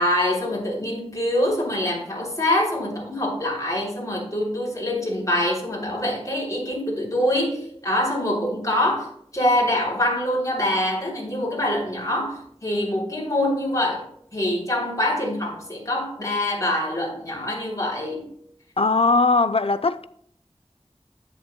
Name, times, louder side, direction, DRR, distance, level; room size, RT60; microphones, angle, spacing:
voice 1, 0.0-14.0 14.3-18.3, left 1 dB, 30° left, 3.2 m, -25 dB
voice 2, 18.8-20.1, left 3 dB, 60° left, 0.5 m, -19 dB
10.5 x 8.6 x 2.2 m
wide cardioid pair, 45°, 11 cm